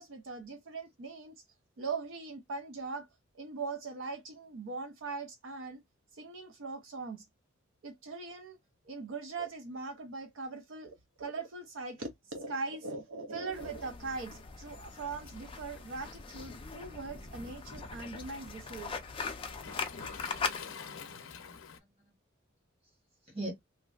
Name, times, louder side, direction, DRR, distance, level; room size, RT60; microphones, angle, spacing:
voice 1, 0.0-1.3 1.8-3.1 3.3-5.8 6.1-7.3 7.8-8.6 8.8-19.0, right 4 dB, 75° right, 0.5 m, -40 dB
sound 1, 13.5-20.6, left 5 dB, 25° left, 0.4 m, -40 dB
Waves surf, 15.2-21.8, left 6 dB, 80° left, 0.5 m, -50 dB
voice 2, 19.4-21.1 22.0-22.1 23.3-23.5, right 1 dB, 30° right, 1.3 m, -45 dB
3.0 x 2.5 x 2.3 m
head